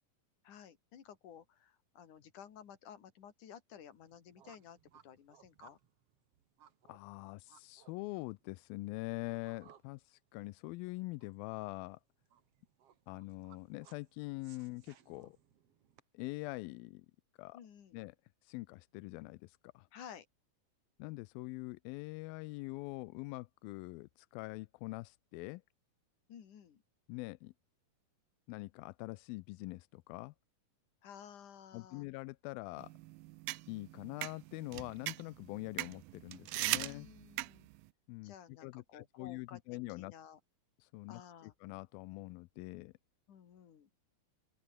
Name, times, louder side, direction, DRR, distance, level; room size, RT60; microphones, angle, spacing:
voice 1, 0.4-4.8 5.0-5.8 17.5-18.0 19.9-20.3 26.3-26.8 31.0-32.1 36.7-37.7 38.2-39.6 39.9-40.4 41.1-41.5 43.3-43.9, left 9 dB, 60° left, 3.8 m, -54 dB
sound 1, 3.9-16.0, right 9 dB, 50° right, 2.3 m, -65 dB
voice 2, 6.9-12.0 13.1-15.4 16.1-17.1 17.4-17.6 17.9-18.1 18.4-19.9 21.0-25.6 27.1-27.5 28.5-30.3 31.7-32.9 33.7-37.1 38.1-38.3 38.6-40.1 40.8-42.9, left 22 dB, 90° left, 2.4 m, -44 dB
sound 2, 32.8-37.8, right 19 dB, 85° right, 2.4 m, -40 dB
open air
omnidirectional pair, 4.1 m